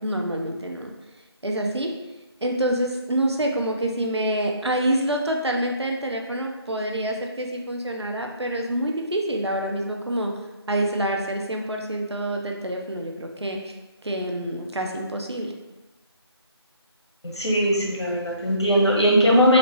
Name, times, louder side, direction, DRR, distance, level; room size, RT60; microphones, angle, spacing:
voice 1, 0.0-0.9 1.4-1.9 2.4-10.3 10.7-13.8 14.0-15.5, right 1 dB, 75° right, 2 dB, 0.6 m, -26 dB
voice 2, 17.2-19.6, equal, 85° left, -3 dB, 1.1 m, -19 dB
3.8 x 2.1 x 3.1 m, 1.1 s
figure-of-eight pair, 175°, 14 cm